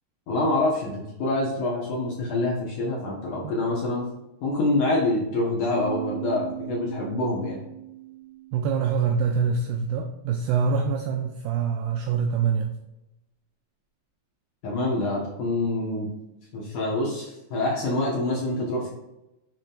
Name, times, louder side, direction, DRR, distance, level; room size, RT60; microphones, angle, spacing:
voice 1, 0.3-4.0 4.4-7.6 14.6-16.1 16.5-18.9, left 2 dB, 65° left, -4 dB, 2.2 m, -26 dB
sound 1, 5.8-9.4, right 13 dB, 25° right, 1.6 m, -38 dB
voice 2, 8.5-12.8, right 6 dB, 85° right, 3 dB, 2.3 m, -25 dB
7.5 x 6.1 x 2.5 m, 0.94 s
omnidirectional pair, 5.1 m